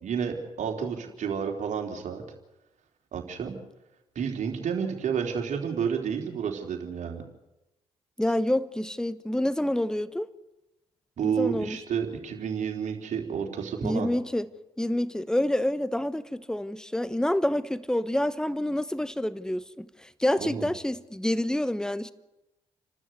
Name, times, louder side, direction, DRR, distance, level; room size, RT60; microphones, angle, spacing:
voice 1, 0.0-2.2 3.1-3.6 4.2-7.2 11.2-14.1 20.4-20.7, right 7 dB, 55° right, 3.6 m, -30 dB
voice 2, 8.2-10.3 11.2-11.8 13.8-14.5 14.8-22.1, left 1 dB, 5° left, 1.1 m, -28 dB
29.5 x 12.5 x 8.0 m
hypercardioid pair, 45°, 15 cm